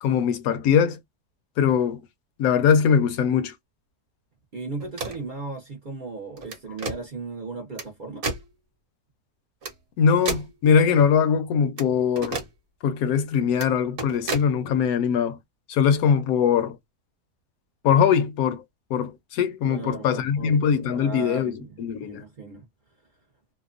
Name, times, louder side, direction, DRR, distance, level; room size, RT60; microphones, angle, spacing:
voice 1, 0.0-1.0 1.6-2.0 2.4-3.5 10.0-12.4 12.8-15.4 15.7-16.8 17.8-18.6 18.9-21.5 21.8-22.2, left 7 dB, 70° left, 1.0 m, -21 dB
voice 2, 4.5-8.3 19.6-20.6 20.9-22.7, right 3 dB, 60° right, 0.5 m, -36 dB
sound 1, 4.8-5.3 6.4-7.0 7.8-7.9 8.2-8.4 9.6-9.7 10.2-10.5 11.8-11.9 12.2-12.5 13.5-13.7 14.0-14.5, right 3 dB, 45° right, 0.9 m, -31 dB
2.8 x 2.1 x 2.4 m
omnidirectional pair, 1.7 m